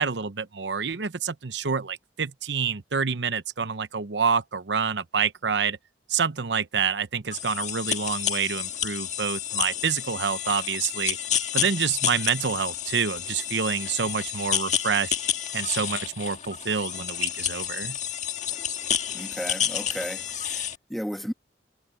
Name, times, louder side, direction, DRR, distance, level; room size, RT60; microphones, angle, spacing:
voice 1, 0.0-5.8 6.1-11.2 11.5-15.2 15.5-18.0, right 6 dB, 80° right, 0.9 m, -27 dB
sound 1, 7.3-20.8, left 9 dB, 45° left, 1.7 m, -30 dB
voice 2, 19.1-21.3, equal, ahead, 1.5 m, -34 dB
head